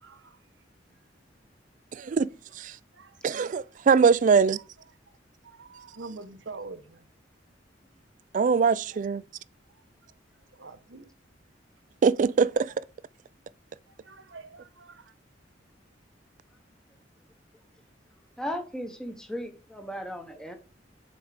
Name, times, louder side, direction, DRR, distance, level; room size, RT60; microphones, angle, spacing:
voice 1, 0.0-0.4 2.9-3.6 4.6-4.7 5.4-7.1 8.9-9.0 10.0-10.1 10.6-11.1 13.9-15.1, right 3 dB, 85° right, 1.0 m, -45 dB
voice 2, 1.9-2.3 2.6-2.7 3.2-4.6 8.3-9.2 12.0-12.7, right 5 dB, 45° right, 0.3 m, -22 dB
voice 3, 18.4-20.5, equal, 5° left, 0.9 m, -36 dB
7.2 x 4.6 x 4.8 m
head